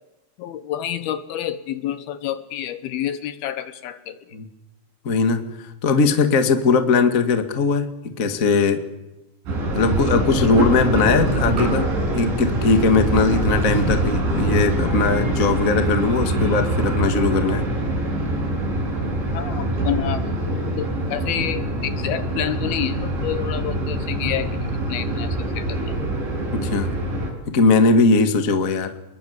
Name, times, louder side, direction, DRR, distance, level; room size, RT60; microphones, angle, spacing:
voice 1, 0.4-4.4 19.3-24.5 24.9-26.0, left 11 dB, 70° left, 13 dB, 2.6 m, -29 dB
voice 2, 5.0-5.4 5.8-8.8 9.7-11.9 12.1-17.7 26.5-26.9 27.5-28.9, left 4 dB, 50° left, 8 dB, 0.9 m, -19 dB
sound 1, 9.5-27.3, right 1 dB, 80° right, 10.5 m, -24 dB
28.0 x 22.0 x 8.1 m, 1.0 s
omnidirectional pair, 5.2 m